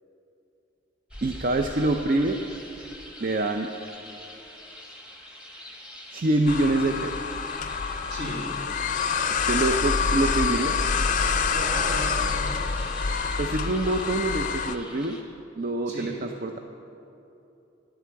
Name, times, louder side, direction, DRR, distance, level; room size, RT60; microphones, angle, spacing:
sound 1, 1.1-15.2, equal, 5° right, 1.1 m, -44 dB
voice 1, 1.2-2.4 3.2-3.7 6.1-7.2 9.3-10.8 13.4-15.2 15.6-16.6, right 2 dB, 50° right, 5 dB, 0.5 m, -25 dB
sound 2, 6.5-14.8, left 5 dB, 45° left, 0.5 m, -26 dB
voice 2, 8.1-8.5 11.5-12.9 15.9-16.2, right 1 dB, 70° right, -4 dB, 2.9 m, -35 dB
10.5 x 8.0 x 8.5 m, 2.9 s
head